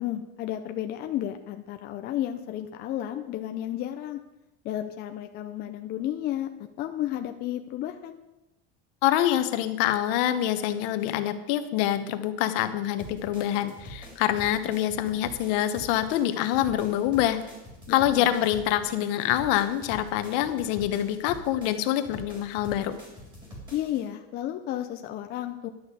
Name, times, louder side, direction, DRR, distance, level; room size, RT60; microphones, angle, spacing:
voice 1, 0.0-4.2 4.6-6.5 6.8-8.2 17.9-18.3 23.7-25.7, left 12 dB, 30° left, 5 dB, 0.6 m, -32 dB
voice 2, 9.0-17.4 17.9-23.0, left 12 dB, 65° left, 9 dB, 1.2 m, -25 dB
sound 1, 13.0-24.0, equal, 15° right, 3.4 m, -45 dB
11.5 x 6.3 x 8.3 m, 0.96 s
cardioid pair, 170°, 30 cm